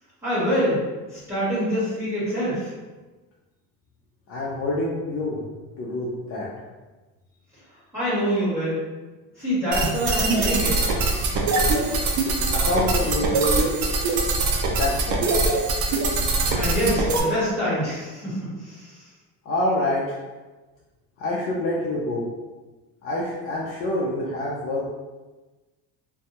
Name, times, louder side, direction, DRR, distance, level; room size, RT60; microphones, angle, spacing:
voice 1, 0.2-0.8 1.1-2.7 7.9-8.8 9.4-10.8 16.5-19.1, equal, 5° right, -13 dB, 1.4 m, -25 dB
voice 2, 4.3-5.4 5.8-6.5 12.5-13.5 14.8-15.4 19.5-20.2 21.2-22.3 23.0-24.9, left 1 dB, 40° left, -6 dB, 0.4 m, -26 dB
sound 1, 9.7-17.2, right 3 dB, 55° right, 0.5 m, -23 dB
2.6 x 2.2 x 2.8 m, 1.2 s
cardioid pair, 160°, 35 cm